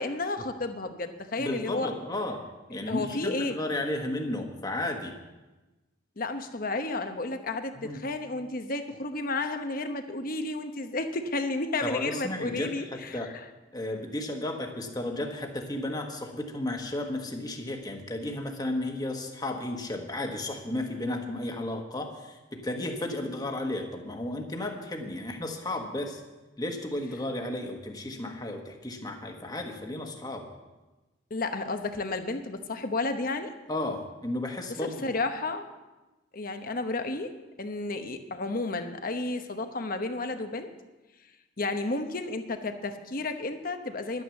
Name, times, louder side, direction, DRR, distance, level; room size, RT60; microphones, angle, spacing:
voice 1, 0.0-1.9 2.9-3.6 6.2-13.3 31.3-33.5 34.8-35.6 36.3-37.3 37.6-40.7 41.6-44.2, left 2 dB, 50° left, 7 dB, 1.0 m, -32 dB
voice 2, 1.4-5.1 7.7-8.0 11.8-13.3 13.7-26.2 26.6-30.5 33.7-35.1, left 1 dB, 20° left, 3 dB, 1.4 m, -33 dB
11.5 x 9.4 x 7.1 m, 1.1 s
head